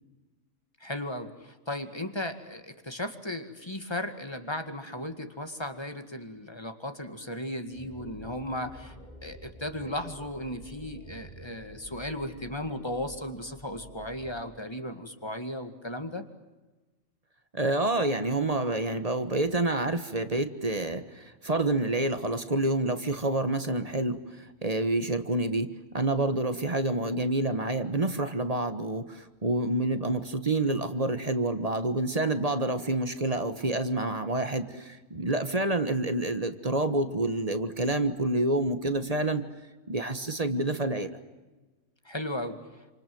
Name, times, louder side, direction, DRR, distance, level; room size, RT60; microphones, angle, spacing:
voice 1, 0.8-9.0 9.2-16.2 42.1-42.6, left 1 dB, 20° left, 7 dB, 2.1 m, -36 dB
sound 1, 7.7-14.4, right 1 dB, 40° left, 3.7 m, -49 dB
voice 2, 17.5-39.5 39.9-41.2, right 2 dB, 30° right, 9 dB, 1.5 m, -28 dB
28.5 x 27.0 x 7.9 m, 1.2 s
omnidirectional pair, 1.3 m